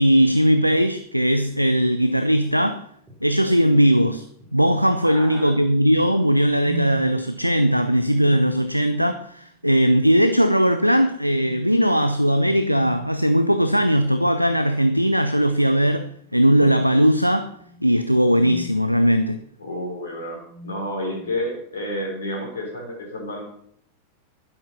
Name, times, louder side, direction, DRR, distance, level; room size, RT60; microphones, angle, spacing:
voice 1, 0.0-2.9 3.2-4.2 4.5-17.5 17.8-19.4, equal, 90° right, 0.6 m, -19 dB
sound 1, 3.1-3.2 3.7-3.9 4.4-4.9 6.5-7.1 8.0-9.3 9.6-9.9 10.6-11.0 11.4-11.7 12.6-13.2 14.4-14.8 15.2-15.4 16.3-18.9 19.8-20.0 20.5-21.5, left 1 dB, 5° right, 3.5 m, -40 dB
voice 2, 5.0-5.6 19.6-23.4, left 1 dB, 65° left, 3.7 m, -30 dB
11.5 x 10.5 x 5.5 m
figure-of-eight pair, 90°, 0 cm